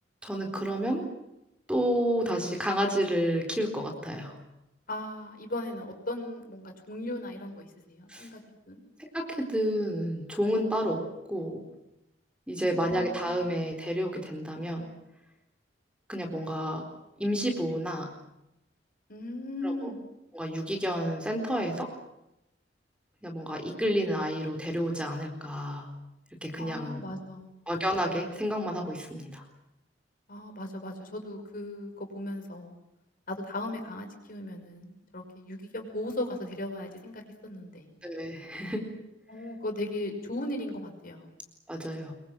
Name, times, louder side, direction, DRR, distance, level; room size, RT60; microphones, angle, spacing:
voice 1, 0.2-1.1 1.7-4.4 8.1-8.3 9.0-11.0 11.3-11.6 12.5-14.9 16.1-16.8 17.2-18.1 19.6-19.9 20.3-21.9 23.2-25.9 26.4-27.0 27.7-29.4 38.0-38.9 41.7-42.1, equal, 5° right, 3 dB, 4.1 m, -30 dB
voice 2, 4.9-8.4 8.7-8.8 12.6-13.4 19.1-20.0 26.6-27.5 30.3-32.7 33.3-37.9 39.3-41.3, left 1 dB, 50° left, 4 dB, 5.8 m, -37 dB
26.0 x 24.0 x 7.6 m, 0.85 s
head